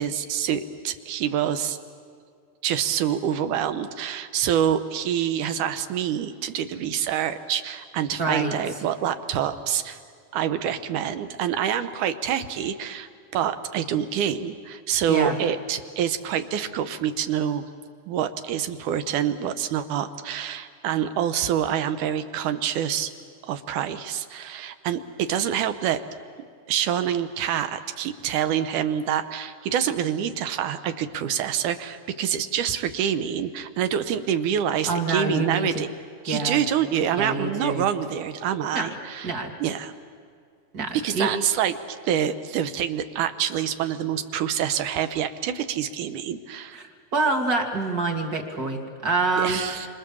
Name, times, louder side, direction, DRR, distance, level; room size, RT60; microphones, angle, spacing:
voice 1, 0.0-1.8 2.6-10.0 10.3-17.6 18.1-23.1 23.4-26.0 26.7-35.9 36.3-39.9 40.9-41.7 42.0-46.8 49.4-49.9, right 9 dB, 80° right, 10 dB, 2.5 m, -26 dB
voice 2, 8.2-8.5 15.1-15.4 34.9-35.7 36.3-36.6 37.2-37.9 38.7-38.9 39.2-39.5 40.7-41.3 46.7-49.8, right 3 dB, 35° right, 2 dB, 2.4 m, -26 dB
28.5 x 25.5 x 7.1 m, 2.2 s
omnidirectional pair, 3.5 m